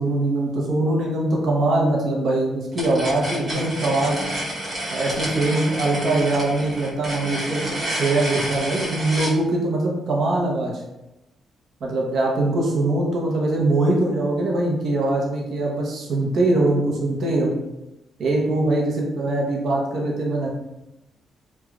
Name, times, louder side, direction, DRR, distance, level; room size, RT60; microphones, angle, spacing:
voice 1, 0.0-4.2 4.9-10.7 11.8-17.5 18.2-20.5, right 2 dB, 60° right, -2 dB, 0.7 m, -22 dB
sound 1, 2.7-9.4, right 1 dB, 30° right, 1.1 m, -29 dB
3.1 x 2.3 x 2.4 m, 0.93 s
cardioid pair, 120°, 0 cm